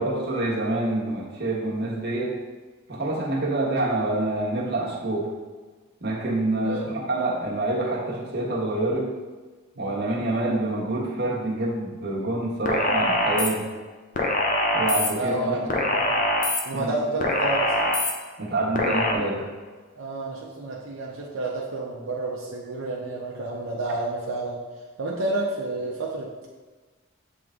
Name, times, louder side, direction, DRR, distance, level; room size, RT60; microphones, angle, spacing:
voice 1, 0.0-2.4 2.9-5.3 6.0-6.8 7.1-9.1 9.8-13.6 14.7-15.6 16.7-16.9 18.4-19.5, right 2 dB, 55° right, -4 dB, 1.3 m, -26 dB
voice 2, 6.6-7.1 9.8-10.0 14.7-14.9 15.2-16.3 16.6-17.8 20.0-24.6 25.0-26.5, right 2 dB, 85° right, -3 dB, 0.8 m, -30 dB
sound 1, 12.7-13.5 14.2-15.1 15.7-16.6 17.2-18.1 18.8-19.1, left 1 dB, 40° left, 0.7 m, -23 dB
7.5 x 3.5 x 3.7 m, 1.4 s
head